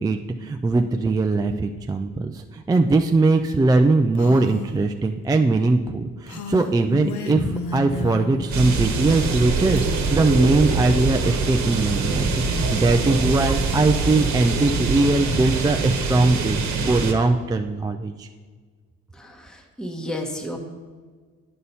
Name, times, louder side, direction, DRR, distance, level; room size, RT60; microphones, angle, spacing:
voice 1, 0.0-18.3, right 3 dB, 15° right, 5 dB, 0.3 m, -21 dB
Female speech woman speaking, 4.1-4.8 6.3-8.5, left 4 dB, 70° left, 0.8 m, -32 dB
sound 1, 8.5-17.1, right 4 dB, 65° right, 1.1 m, -24 dB
voice 2, 19.1-20.6, left 1 dB, ahead, 2 dB, 1.0 m, -32 dB
9.3 x 5.6 x 4.2 m, 1.5 s
cardioid pair, 90°, 30 cm